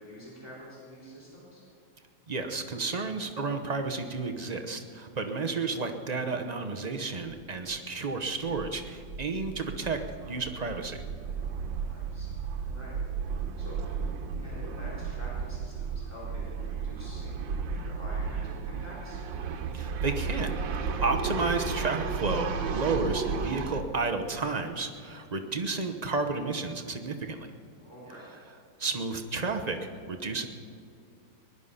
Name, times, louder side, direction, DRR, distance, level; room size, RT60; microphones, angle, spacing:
voice 1, 0.0-1.6 8.3-8.7 11.9-12.3 12.6-14.0 14.4-19.2 27.8-28.3, equal, 10° right, -7 dB, 3.9 m, -47 dB
voice 2, 2.3-10.0 10.2-11.0 19.7-20.5 20.8-27.5 28.8-30.5, right 3 dB, 40° right, 4 dB, 0.5 m, -32 dB
sound 1, 7.3-7.4 7.7-7.8 8.1-23.8, right 5 dB, 80° right, 1.7 m, -34 dB
20.0 x 11.5 x 5.6 m, 2.4 s
omnidirectional pair, 2.0 m